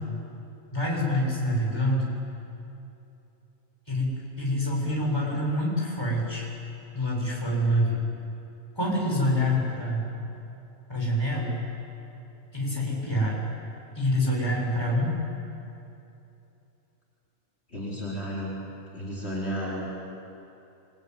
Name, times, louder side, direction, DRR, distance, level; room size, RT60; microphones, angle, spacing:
voice 1, 0.7-2.2 3.9-6.5 6.9-8.1 8.7-10.1 10.9-11.7 12.5-13.4 13.9-15.2, equal, 20° left, -3 dB, 6.7 m, -26 dB
voice 2, 17.7-18.6 18.9-19.9, equal, 50° left, -6 dB, 5.2 m, -32 dB
27.5 x 22.5 x 9.5 m, 2.8 s
omnidirectional pair, 1.4 m